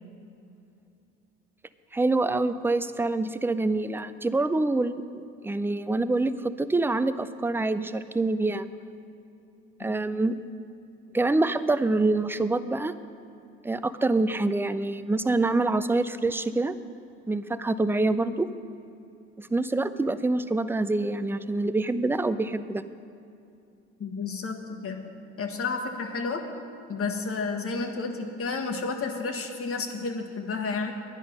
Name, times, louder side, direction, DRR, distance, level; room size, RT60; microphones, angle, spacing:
voice 1, 1.9-8.7 9.8-10.4 11.1-12.9 13.6-16.8 17.3-18.5 19.4-22.8, right 2 dB, 5° right, 12 dB, 0.4 m, -26 dB
voice 2, 24.0-25.0 25.4-26.5 26.9-30.9, left 4 dB, 45° left, 4 dB, 1.6 m, -31 dB
10.5 x 10.0 x 5.5 m, 2.7 s
supercardioid pair, 75°, 31 cm